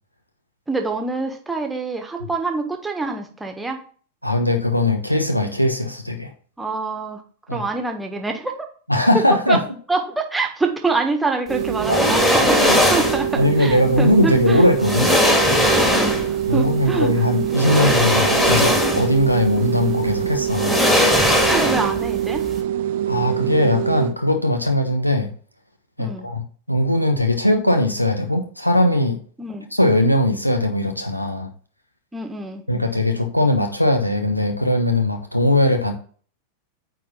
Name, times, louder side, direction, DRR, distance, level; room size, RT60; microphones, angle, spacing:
voice 1, 0.7-3.8 6.6-7.2 7.5-8.5 9.5-9.6 9.9-14.7 15.0-15.4 15.8-17.1 21.5-22.4 26.0-26.3 29.4-29.7 32.1-32.6, right 3 dB, 10° right, 1.5 m, -26 dB
voice 2, 4.2-6.3 7.5-7.6 8.9-9.6 11.9-12.0 12.6-12.8 13.4-15.1 16.5-20.8 23.1-25.3 26.0-29.2 29.7-31.5 32.7-35.9, left 1 dB, 90° left, 1.2 m, -19 dB
sound 1, 11.5-24.1, right 10 dB, 55° right, 0.6 m, -24 dB
sound 2, 11.8-13.3 14.3-14.4 14.8-16.4 17.5-19.2 19.6-19.7 20.5-22.1 22.4-22.5, left 1 dB, 10° left, 2.3 m, -19 dB
9.3 x 4.0 x 5.5 m
figure-of-eight pair, 90°, 0 cm